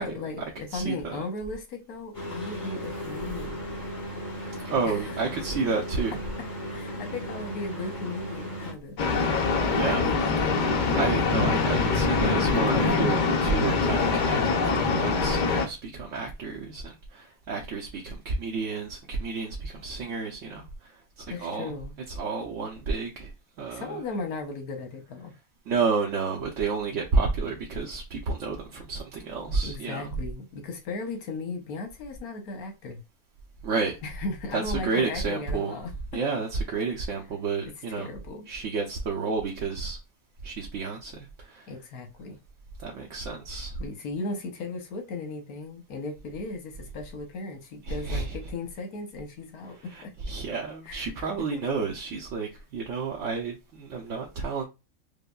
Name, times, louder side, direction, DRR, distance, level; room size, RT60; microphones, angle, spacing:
voice 1, 0.0-3.6 4.8-5.2 6.6-9.3 9.9-10.2 21.3-21.9 23.7-25.3 29.6-33.0 34.0-35.9 38.0-38.5 41.7-42.4 43.8-50.1 50.8-51.1 51.5-51.6, left 3 dB, 90° left, 1.3 m, -36 dB
voice 2, 0.7-1.2 4.6-6.2 9.7-10.1 10.9-14.4 14.6-21.7 22.2-23.3 23.6-24.0 25.7-30.1 33.6-34.0 34.5-35.8 36.1-38.1 38.5-40.0 40.4-41.7 42.8-43.8 47.8-48.4 49.9-54.6, right 4 dB, 65° right, 1.0 m, -30 dB
sound 1, 2.1-8.7, equal, 35° left, 1.3 m, -36 dB
sound 2, 9.0-15.7, left 4 dB, 70° left, 0.4 m, -24 dB
5.1 x 2.1 x 2.3 m
omnidirectional pair, 1.5 m